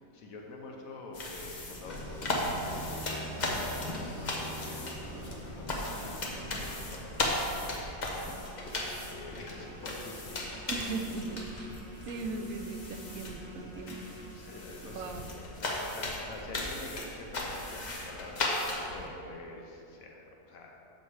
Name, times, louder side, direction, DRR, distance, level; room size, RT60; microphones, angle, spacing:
voice 1, 0.0-3.3 3.5-10.6 14.3-15.2 15.5-20.8, left 2 dB, 80° left, 0 dB, 1.2 m, -47 dB
sound 1, 1.1-19.1, left 2 dB, 35° left, 0.8 m, -37 dB
sound 2, 1.7-7.1, equal, 55° left, 2.2 m, -43 dB
sound 3, 8.4-15.3, equal, 5° left, 1.5 m, -50 dB
voice 2, 10.7-11.7 12.0-14.0 14.8-15.3, right 3 dB, 75° right, 6 dB, 1.0 m, -38 dB
6.9 x 6.9 x 4.7 m, 2.8 s
omnidirectional pair, 1.5 m